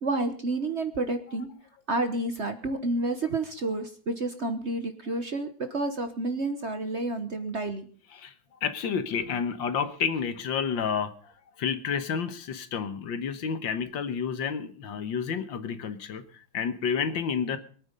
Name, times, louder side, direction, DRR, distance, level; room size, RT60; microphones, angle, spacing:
voice 1, 0.0-1.5 1.9-7.9, right 2 dB, 40° right, 8 dB, 1.1 m, -30 dB
voice 2, 8.6-11.3 11.6-17.6, left 6 dB, 70° left, 11 dB, 1.9 m, -30 dB
23.0 x 8.9 x 5.3 m, 0.44 s
omnidirectional pair, 2.2 m